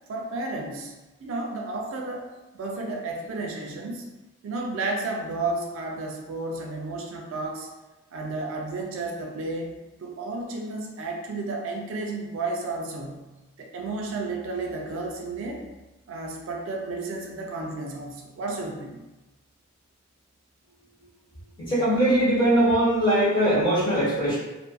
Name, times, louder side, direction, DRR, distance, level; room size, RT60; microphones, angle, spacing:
voice 1, 0.1-0.9 1.2-4.1 4.4-7.7 8.1-13.3 13.6-15.7 16.1-19.0, right 3 dB, 65° right, 0 dB, 0.3 m, -32 dB
voice 2, 21.6-24.4, right 1 dB, 20° left, -9 dB, 1.0 m, -21 dB
2.6 x 2.3 x 2.2 m, 1.1 s
head